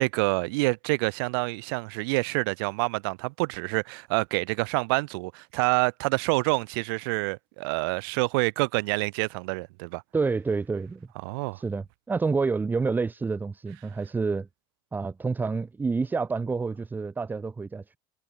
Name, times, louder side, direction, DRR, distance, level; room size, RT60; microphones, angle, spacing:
voice 1, 0.0-10.0 11.2-11.6, right 28 dB, 75° right, 0.9 m, -27 dB
voice 2, 10.1-11.1 11.5-14.5 14.9-18.0, right 4 dB, 15° right, 0.7 m, -28 dB
supercardioid pair, 100°, 12 cm